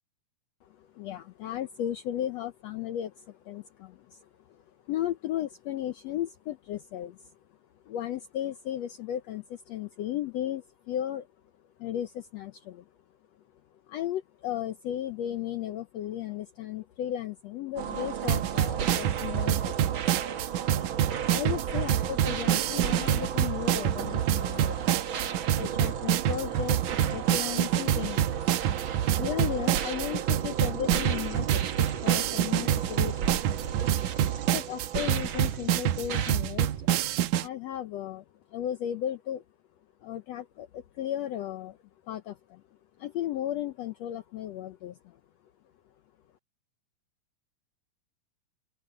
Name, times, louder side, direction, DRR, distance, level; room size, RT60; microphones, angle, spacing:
voice 1, 0.6-7.3 7.8-11.3 11.8-12.8 13.9-20.0 21.2-24.9 25.5-28.4 29.2-33.4 34.5-36.9 37.4-38.2 38.5-39.4 40.0-41.8 42.0-42.6 43.0-45.2, left 11 dB, 80° left, 1.5 m, -35 dB
sound 1, 17.8-36.3, right 8 dB, 60° right, 1.3 m, -35 dB
sound 2, 18.3-37.5, right 11 dB, 75° right, 2.1 m, -27 dB
open air
omnidirectional pair, 3.9 m